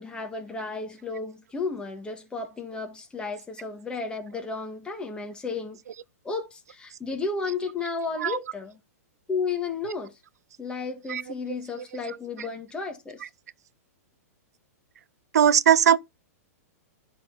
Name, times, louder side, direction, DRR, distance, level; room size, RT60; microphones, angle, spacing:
voice 1, 0.0-5.8 6.2-8.8 9.3-10.1 10.6-13.2, left 4 dB, 10° left, 1.7 m, -33 dB
voice 2, 15.3-16.0, right 9 dB, 85° right, 0.5 m, -19 dB
11.0 x 4.1 x 4.1 m
hypercardioid pair, 135°, 8 cm